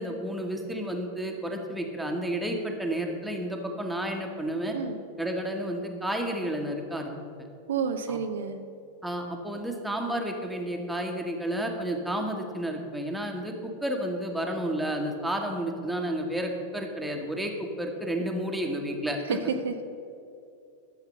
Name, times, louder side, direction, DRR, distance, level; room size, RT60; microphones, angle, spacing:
voice 1, 0.0-4.8 5.2-7.2 8.1-8.2 9.0-19.4, right 1 dB, 5° right, 2 dB, 1.5 m, -31 dB
voice 2, 7.7-8.6 19.3-19.8, right 6 dB, 65° right, 7 dB, 0.6 m, -30 dB
11.5 x 7.3 x 6.7 m, 2.5 s
figure-of-eight pair, 90°, 0 cm